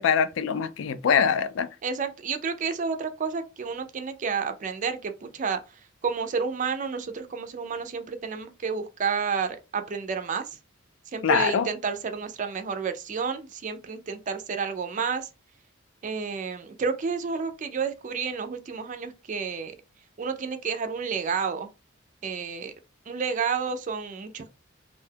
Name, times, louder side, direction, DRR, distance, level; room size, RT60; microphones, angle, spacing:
voice 1, 0.0-1.7 11.2-11.7, left 7 dB, 65° left, 0.3 m, -23 dB
voice 2, 1.8-5.6 6.0-10.6 11.1-15.3 16.0-19.8 20.2-21.7 22.2-22.7 23.1-24.5, right 5 dB, 35° right, 0.4 m, -30 dB
2.6 x 2.2 x 3.3 m
head